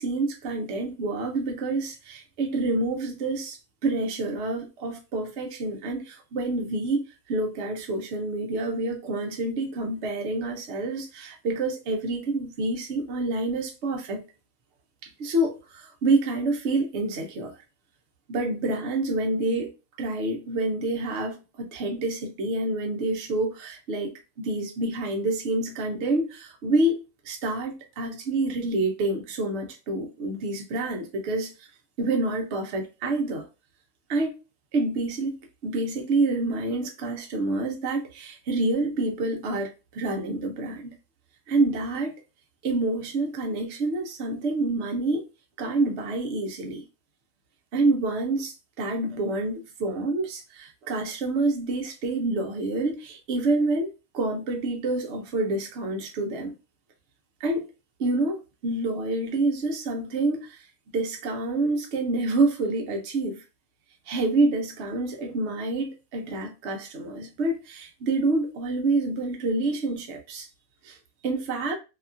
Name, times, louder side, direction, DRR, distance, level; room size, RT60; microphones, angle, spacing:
voice 1, 0.0-14.2 15.0-17.5 18.3-19.7 20.0-31.5 32.0-33.4 34.1-34.4 34.7-35.4 35.6-40.9 41.5-42.2 42.6-45.2 45.6-46.8 47.7-56.5 57.4-57.7 58.0-60.6 60.9-63.4 64.1-70.5 70.8-71.0 71.2-71.7, right 2 dB, 55° right, 0.8 m, -27 dB
2.8 x 2.3 x 2.5 m
omnidirectional pair, 1.7 m